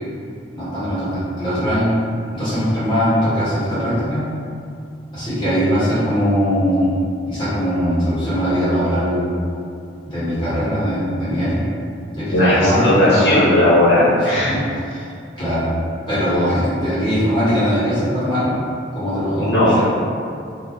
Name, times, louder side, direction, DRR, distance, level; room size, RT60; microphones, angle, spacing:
voice 1, 0.5-2.0 2.3-4.3 5.1-6.9 7.3-9.3 10.0-11.6 12.1-13.4 14.2-15.1 15.4-15.7 16.1-18.6 18.9-19.8, equal, 25° left, -13 dB, 1.4 m, -20 dB
voice 2, 12.3-14.5 19.4-19.8, left 1 dB, 80° left, -11 dB, 1.1 m, -15 dB
2.8 x 2.1 x 3.7 m, 2.5 s
head